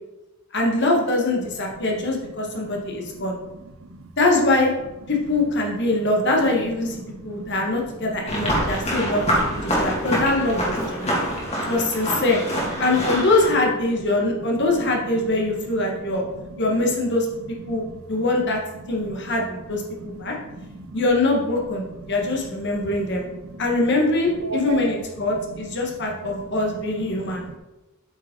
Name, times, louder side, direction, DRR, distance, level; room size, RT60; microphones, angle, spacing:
voice 1, 0.5-3.4 4.2-4.7 5.1-11.2 11.6-12.4 12.8-16.2 16.6-17.8 18.1-18.6 18.9-20.4 20.9-23.3 23.6-27.5, left 2 dB, 60° left, 0 dB, 1.7 m, -23 dB
voice 2, 7.1-7.6 9.0-9.1 9.7-9.8 11.0-11.7 16.2-16.3 17.7-18.0 19.0-19.1 20.0-20.2 20.6-21.0 24.4-24.9 27.2-27.6, right 3 dB, 80° right, 8 dB, 0.8 m, -36 dB
sound 1, 8.3-13.5, equal, 30° left, 2.4 m, -25 dB
8.5 x 5.4 x 3.8 m, 1.0 s
head